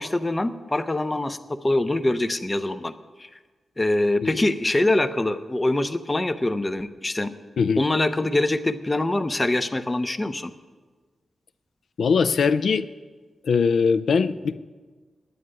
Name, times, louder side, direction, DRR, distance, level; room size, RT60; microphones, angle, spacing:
voice 1, 0.0-2.9 3.2-3.3 3.8-7.3 7.8-10.5, left 2 dB, 15° left, 10 dB, 0.5 m, -24 dB
voice 2, 12.0-12.9 13.4-14.5, left 5 dB, 70° left, 11 dB, 0.4 m, -21 dB
9.5 x 9.4 x 9.9 m, 1.4 s
wide cardioid pair, 175°, 0 cm